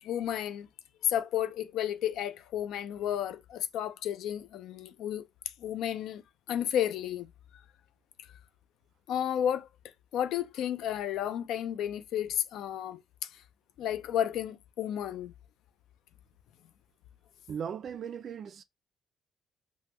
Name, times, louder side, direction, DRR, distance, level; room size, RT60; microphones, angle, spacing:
voice 1, 0.0-0.7 1.0-5.3 5.6-6.2 6.5-7.3 9.1-9.7 10.1-13.4 13.8-15.3, left 10 dB, 85° left, 0.4 m, -32 dB
voice 2, 17.5-18.6, right 7 dB, 60° right, 0.3 m, -38 dB
3.3 x 2.0 x 3.0 m
cardioid pair, 90°, 0 cm